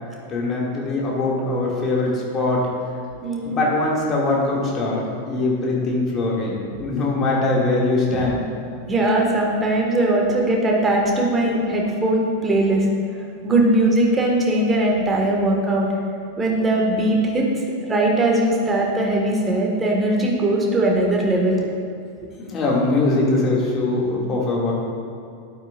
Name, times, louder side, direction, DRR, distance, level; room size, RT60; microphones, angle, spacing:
voice 1, 0.3-2.7 3.4-8.4 22.4-24.7, left 2 dB, 25° left, -3 dB, 2.2 m, -22 dB
voice 2, 3.2-3.6 8.1-8.3 8.9-12.8 13.4-15.9 16.4-17.5 17.8-21.6, right 1 dB, 15° right, -1 dB, 1.7 m, -20 dB
11.5 x 8.7 x 2.5 m, 2.4 s
figure-of-eight pair, 90°, 0 cm